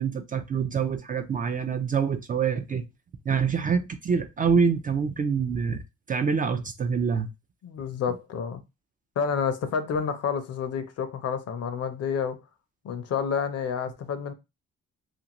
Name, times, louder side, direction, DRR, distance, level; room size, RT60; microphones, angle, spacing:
voice 1, 0.0-2.8 3.3-5.8 6.1-7.3, right 6 dB, 30° right, 0.4 m, -26 dB
voice 2, 7.6-8.6 9.2-12.4 12.8-14.3, left 6 dB, 55° left, 0.6 m, -29 dB
2.5 x 2.4 x 2.9 m
cardioid pair, 90°, 30 cm